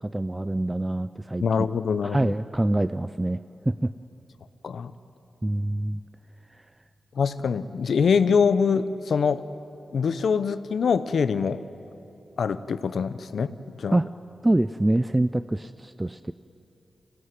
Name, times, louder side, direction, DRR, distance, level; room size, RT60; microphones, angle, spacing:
voice 1, 0.0-1.4 2.0-3.4 3.7-3.9 5.4-6.0 13.9-14.1 14.4-16.3, right 1 dB, 20° right, 12 dB, 0.5 m, -25 dB
voice 2, 1.4-2.3 4.6-4.9 7.2-9.4 9.9-11.6 12.4-14.0, left 6 dB, 80° left, 13 dB, 0.8 m, -24 dB
25.5 x 16.5 x 9.4 m, 2.9 s
cardioid pair, 55°, 0 cm